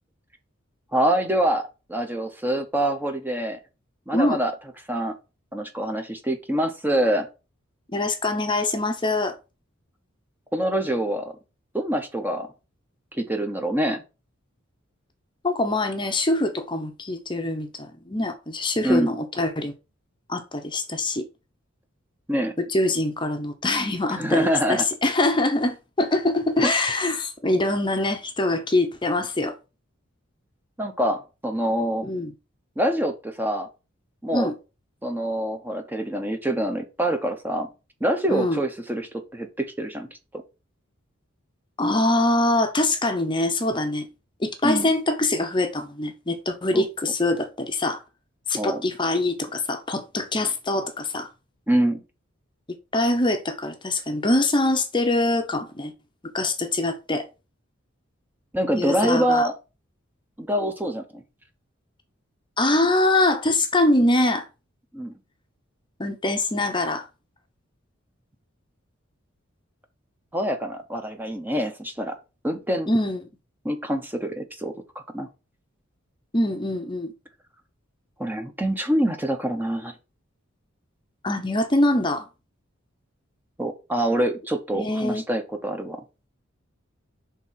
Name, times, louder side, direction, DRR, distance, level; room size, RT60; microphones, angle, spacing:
voice 1, 0.9-1.6 1.9-3.6 4.1-4.5 4.9-5.1 5.5-7.3 10.5-11.4 11.7-12.5 13.1-14.0 18.8-19.2 22.3-22.5 24.1-24.9 26.6-26.7 30.8-32.1 32.8-33.7 34.2-34.5 35.0-37.7 38.0-40.4 44.6-44.9 46.7-46.8 48.6-48.8 51.7-52.0 58.5-59.5 60.4-61.2 64.9-65.1 70.3-72.2 72.4-72.9 73.6-75.3 78.2-79.9 83.6-86.0, right 1 dB, 10° right, 0.8 m, -25 dB
voice 2, 7.9-9.3 15.4-19.7 20.3-21.3 22.6-29.5 32.0-32.3 34.3-34.5 38.3-38.6 41.8-44.1 44.4-48.0 48.5-51.3 52.9-55.9 56.2-57.3 58.7-59.5 62.6-64.5 66.0-67.0 72.9-73.2 76.3-77.1 81.2-82.3 84.7-85.2, left 2 dB, 25° left, 0.8 m, -24 dB
6.0 x 3.6 x 5.6 m
head